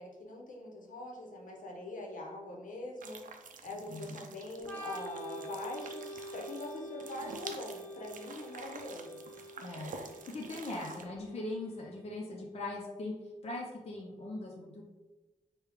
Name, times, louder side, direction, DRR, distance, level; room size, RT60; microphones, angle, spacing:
voice 1, 0.0-3.2 3.6-9.2, left 2 dB, 75° left, -1 dB, 0.8 m, -43 dB
sound 1, 3.0-11.0, right 4 dB, 75° right, 0.4 m, -49 dB
voice 2, 3.7-4.2 9.6-13.1 13.4-14.8, left 2 dB, 50° left, -2 dB, 0.6 m, -40 dB
Organ, 4.6-12.1, right 1 dB, 15° left, 0.7 m, -47 dB
4.8 x 2.2 x 3.4 m, 1.1 s
wide cardioid pair, 125°, 13 cm